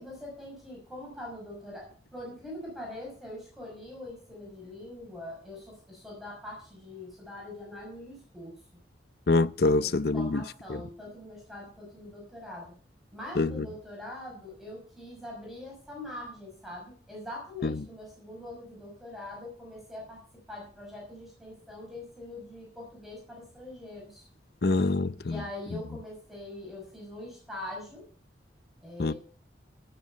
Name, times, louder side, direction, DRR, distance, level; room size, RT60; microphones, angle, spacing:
voice 1, 0.0-8.6 9.7-12.8 13.1-20.2 20.5-24.3 25.2-28.1 28.8-29.2, left 1 dB, ahead, 6.0 m, -43 dB
voice 2, 9.3-10.4 10.7-10.8 13.4-13.6 17.6-17.7 24.6-25.4 29.0-29.1, left 3 dB, 55° left, 0.6 m, -25 dB
18.0 x 7.8 x 5.5 m
head